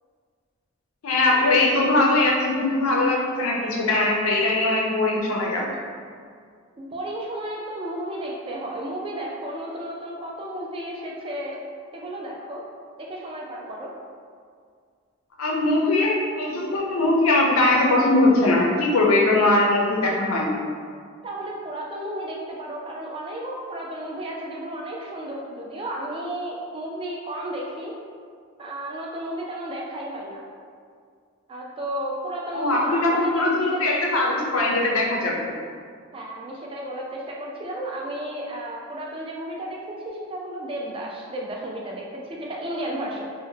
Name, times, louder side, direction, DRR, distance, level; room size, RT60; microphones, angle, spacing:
voice 1, 1.0-5.6 15.4-20.5 32.5-35.5, left 2 dB, 85° left, -2 dB, 0.5 m, -21 dB
voice 2, 6.8-11.6 11.9-12.6 13.0-13.9 21.2-27.9 28.6-30.5 31.5-34.2 36.1-43.3, right 1 dB, 25° right, -2 dB, 0.3 m, -33 dB
2.8 x 2.1 x 2.6 m, 2.1 s
head